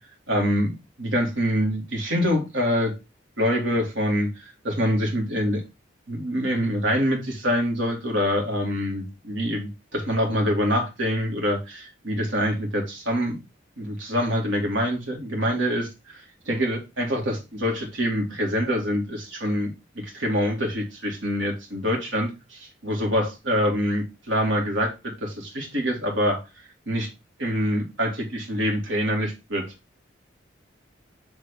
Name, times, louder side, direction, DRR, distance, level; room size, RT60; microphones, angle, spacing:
voice 1, 0.3-2.9 3.4-5.6 6.1-13.4 13.8-16.2 16.5-19.7 20.0-24.9 25.2-26.4 26.9-27.1 27.4-29.6, equal, 85° right, 1 dB, 2.2 m, -25 dB
6.8 x 3.4 x 5.2 m, 0.26 s
head